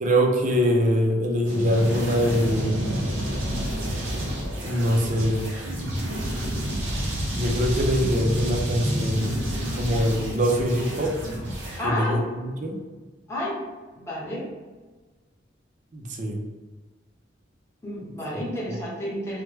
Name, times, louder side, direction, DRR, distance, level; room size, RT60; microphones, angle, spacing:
voice 1, 0.0-2.9 4.6-5.5 7.3-9.4 9.7-11.1 11.8-12.8 15.9-16.4 18.7-18.8, equal, 40° right, 1 dB, 0.5 m, -23 dB
sound 1, 1.4-11.8, equal, 85° right, 0.7 m, -29 dB
voice 2, 11.8-12.2 13.3-13.6 14.0-14.5 17.8-19.4, left 1 dB, 15° left, -6 dB, 0.8 m, -30 dB
3.1 x 2.1 x 3.1 m, 1.3 s
head